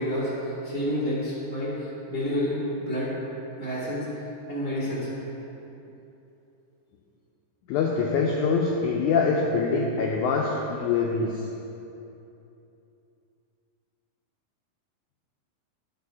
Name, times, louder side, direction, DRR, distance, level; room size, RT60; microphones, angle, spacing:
voice 1, 0.0-2.6 2.9-3.1 3.6-4.2 4.5-5.1, equal, 40° right, -9 dB, 0.8 m, -29 dB
voice 2, 7.7-11.5, left 4 dB, 90° left, -1 dB, 1.7 m, -24 dB
11.0 x 4.9 x 4.7 m, 2.9 s
omnidirectional pair, 4.1 m